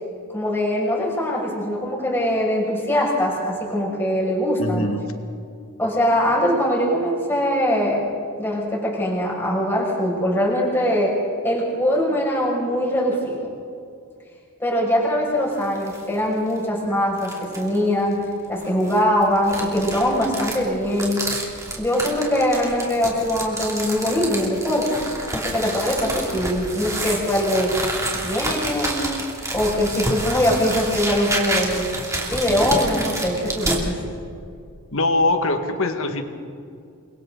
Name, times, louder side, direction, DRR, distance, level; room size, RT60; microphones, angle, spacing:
voice 1, 0.3-4.9 5.8-8.0 8.4-11.1 11.4-13.5 14.6-21.3 21.8-25.0 25.3-27.7 28.1-29.0 29.5-31.9 32.1-34.0, equal, 10° left, -4 dB, 6.2 m, -22 dB
voice 2, 4.6-5.1 34.9-36.2, left 2 dB, 65° left, 6 dB, 1.8 m, -22 dB
sound 1, 15.5-16.1 16.5-16.6 17.2-17.8 18.6-33.8, right 2 dB, 15° right, 2.9 m, -29 dB
29.5 x 23.5 x 4.0 m, 2.4 s
head